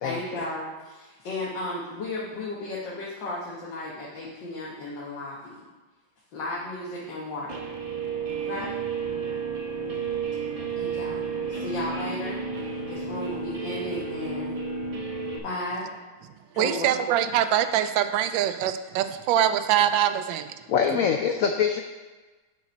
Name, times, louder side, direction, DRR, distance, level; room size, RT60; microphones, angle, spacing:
voice 1, 0.0-5.6 6.3-7.7 8.4-8.7 10.7-14.5 15.4-15.9 16.5-16.9 20.9-21.0, left 1 dB, 70° left, -6 dB, 1.9 m, -34 dB
Guitar, 7.5-15.4, right 5 dB, 35° right, 0.6 m, -32 dB
voice 2, 16.6-20.5, right 10 dB, 80° right, 10 dB, 1.3 m, -23 dB
voice 3, 20.7-21.8, left 7 dB, 90° left, 5 dB, 0.7 m, -23 dB
7.0 x 6.1 x 5.2 m, 1.2 s
omnidirectional pair, 2.1 m